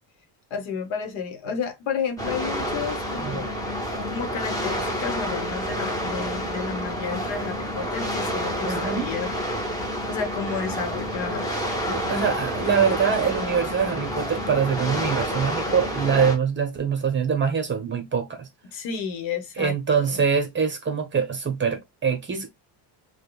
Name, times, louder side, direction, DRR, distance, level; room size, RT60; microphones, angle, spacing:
voice 1, 0.5-3.5 4.1-9.3 10.1-11.5 18.6-20.2, left 6 dB, 70° left, 1.1 m, -31 dB
sound 1, 2.2-16.4, equal, 5° left, 0.8 m, -29 dB
voice 2, 3.2-3.5 8.6-9.1 11.8-18.5 19.6-22.5, right 6 dB, 25° right, 0.8 m, -24 dB
5.0 x 2.2 x 2.3 m
cardioid pair, 155°, 48 cm